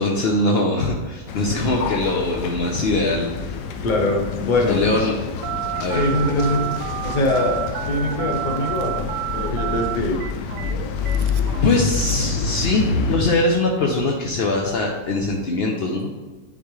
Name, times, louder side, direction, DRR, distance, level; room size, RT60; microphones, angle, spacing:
voice 1, 0.0-3.3 4.7-5.2 5.8-6.0 11.6-16.1, left 2 dB, 60° left, 0 dB, 0.6 m, -21 dB
sound 1, 1.3-13.2, left 5 dB, 80° left, 1.2 m, -27 dB
voice 2, 3.8-4.9 5.9-10.2, left 1 dB, 35° left, 2 dB, 0.9 m, -23 dB
Telephone, 5.4-12.3, right 12 dB, 80° right, 1.2 m, -30 dB
10.0 x 4.2 x 3.1 m, 1.3 s
omnidirectional pair, 1.8 m